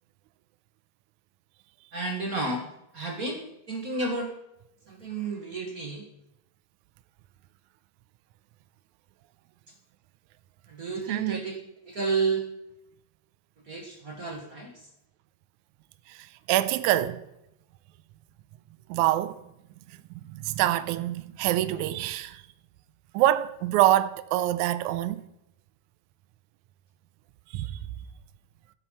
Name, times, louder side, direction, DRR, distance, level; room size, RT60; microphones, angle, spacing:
voice 1, 1.9-2.7 2.9-4.3 4.9-6.0 10.7-11.6 11.8-12.5 13.7-14.9, right 3 dB, 35° right, 1.6 m, -31 dB
voice 2, 11.1-11.4 16.1-16.2 16.5-17.2 18.9-19.4 20.2-22.4 23.1-25.2 27.5-27.7, right 14 dB, 80° right, 1.9 m, -25 dB
14.0 x 8.9 x 5.6 m
omnidirectional pair, 3.8 m